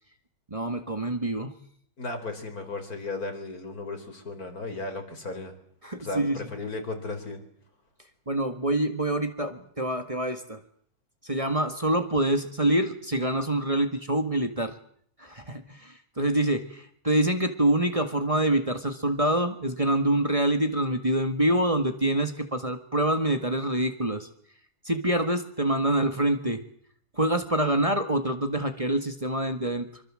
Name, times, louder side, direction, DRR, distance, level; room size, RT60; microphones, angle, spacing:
voice 1, 0.5-1.5 5.8-6.4 8.3-10.6 11.2-14.7 15.2-24.3 24.8-26.6 27.2-30.0, right 1 dB, 20° right, 7 dB, 1.8 m, -26 dB
voice 2, 2.0-5.5 6.0-7.4, left 3 dB, 70° left, 6 dB, 4.6 m, -35 dB
25.0 x 25.0 x 7.7 m, 0.63 s
omnidirectional pair, 1.6 m